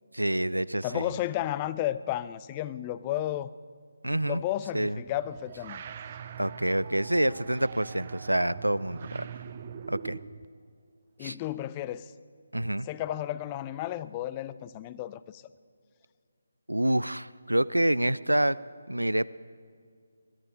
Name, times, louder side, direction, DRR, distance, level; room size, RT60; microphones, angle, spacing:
voice 1, 0.1-1.1 4.0-4.4 4.7-5.0 6.4-9.3 9.9-10.2 11.2-11.4 12.5-12.9 16.7-18.6 18.9-19.3, right 1 dB, 85° right, 19 dB, 0.4 m, -27 dB
voice 2, 0.8-3.5 4.3-5.9 11.2-12.1 12.9-15.4, left 13 dB, 20° left, 17 dB, 0.4 m, -33 dB
sound 1, 5.0-10.5, right 7 dB, 30° right, 0.5 m, -43 dB
21.5 x 11.0 x 5.1 m, 2.1 s
figure-of-eight pair, 150°, 0 cm